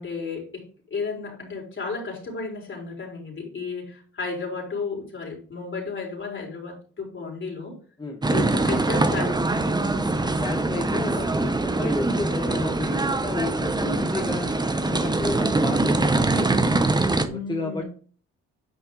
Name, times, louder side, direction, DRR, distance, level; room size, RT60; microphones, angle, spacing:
voice 1, 0.0-7.7 8.3-10.0 17.2-17.8, left 4 dB, 40° left, -2 dB, 4.2 m, -33 dB
sound 1, 8.2-17.3, right 2 dB, 15° right, 0.9 m, -23 dB
voice 2, 10.4-15.9 16.2-16.8 17.5-17.8, left 2 dB, 15° left, 1 dB, 1.1 m, -32 dB
9.8 x 5.5 x 3.8 m, 0.43 s
cardioid pair, 90°, 30 cm